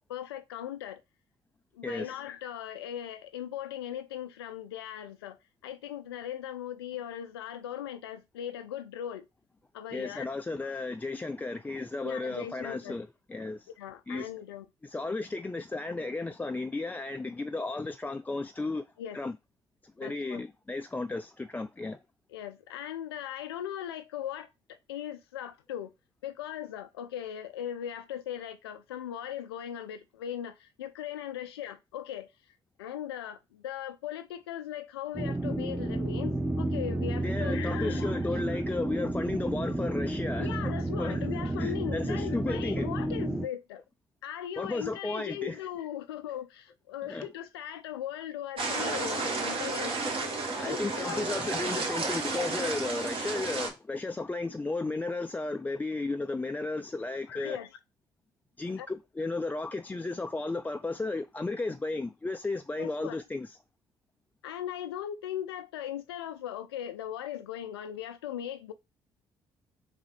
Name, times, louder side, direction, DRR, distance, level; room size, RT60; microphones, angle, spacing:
voice 1, 0.1-1.0 1.8-5.4 5.6-9.2 9.7-10.3 10.6-10.7 12.0-12.9 13.8-14.7 19.0-19.2 20.0-20.4 22.3-25.9 26.2-32.3 32.8-38.6 40.4-43.8 44.2-49.9 50.7-51.2 57.3-57.7 58.8-58.9 62.8-63.2 64.4-68.7, left 10 dB, 85° left, 0.4 m, -39 dB
voice 2, 1.8-2.2 9.9-13.7 14.1-14.3 14.8-18.8 19.1-19.4 20.0-22.0 37.2-40.7 41.0-41.2 41.6-42.9 44.6-45.6 47.0-47.3 50.6-57.6 58.6-63.6, left 3 dB, 15° left, 0.3 m, -34 dB
sound 1, 35.1-43.5, right 1 dB, 5° right, 0.7 m, -31 dB
sound 2, 48.6-53.7, right 3 dB, 45° right, 1.4 m, -32 dB
3.9 x 3.7 x 3.2 m
hypercardioid pair, 50°, 13 cm